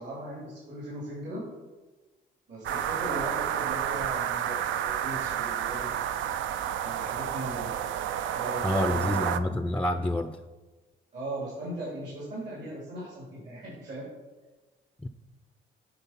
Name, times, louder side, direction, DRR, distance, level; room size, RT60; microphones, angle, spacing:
voice 1, 0.0-1.4 2.5-5.9 6.8-7.7 8.3-9.2 11.1-14.1, right 1 dB, 60° right, -6 dB, 2.8 m, -38 dB
sound 1, 2.6-9.4, right 10 dB, 80° right, 0.4 m, -30 dB
voice 2, 8.6-10.4 15.0-15.1, left 1 dB, 5° left, 8 dB, 0.4 m, -28 dB
9.1 x 3.8 x 5.8 m, 1.2 s
cardioid pair, 90°, 20 cm